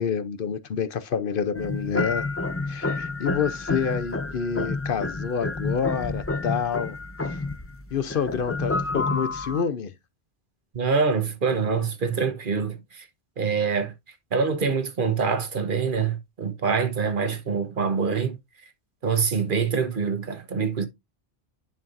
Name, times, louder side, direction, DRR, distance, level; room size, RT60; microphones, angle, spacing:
voice 1, 0.0-2.3 2.7-7.0 7.2-7.4 7.9-9.9, left 7 dB, 60° left, 0.8 m, -28 dB
sound 1, 1.5-9.6, left 3 dB, 20° left, 0.5 m, -29 dB
voice 2, 10.7-13.0 13.4-13.9 14.3-18.4 19.0-20.9, right 5 dB, 55° right, 1.1 m, -25 dB
9.7 x 5.4 x 2.5 m
omnidirectional pair, 1.1 m